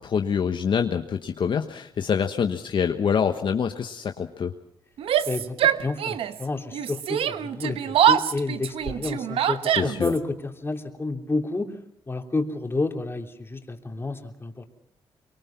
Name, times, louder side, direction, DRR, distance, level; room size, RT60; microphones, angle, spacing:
voice 1, 0.0-4.5 9.8-10.1, left 7 dB, 60° left, 6 dB, 1.3 m, -25 dB
Yell, 5.0-6.4 6.7-10.2, right 10 dB, 85° right, 1.1 m, -24 dB
voice 2, 5.2-11.8 12.1-14.7, left 3 dB, 25° left, 4 dB, 3.2 m, -30 dB
24.0 x 23.5 x 5.9 m, 0.69 s
cardioid pair, 75°, 9 cm